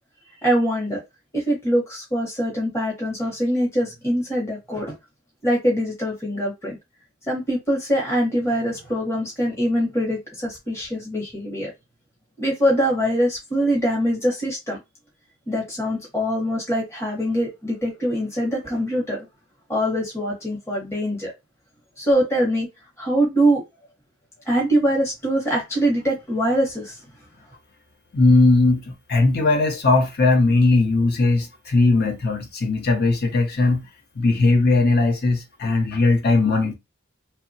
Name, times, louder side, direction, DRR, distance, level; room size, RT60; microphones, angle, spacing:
voice 1, 0.4-1.0 1.3-5.0 5.4-6.8 7.3-11.7 12.4-14.8 15.5-19.2 19.7-21.3 22.0-22.7 23.0-23.6 24.5-27.0, equal, 15° left, 0.9 m, -23 dB
voice 2, 28.1-33.8 34.2-36.7, left 3 dB, 50° left, 0.7 m, -18 dB
2.8 x 2.1 x 2.6 m
head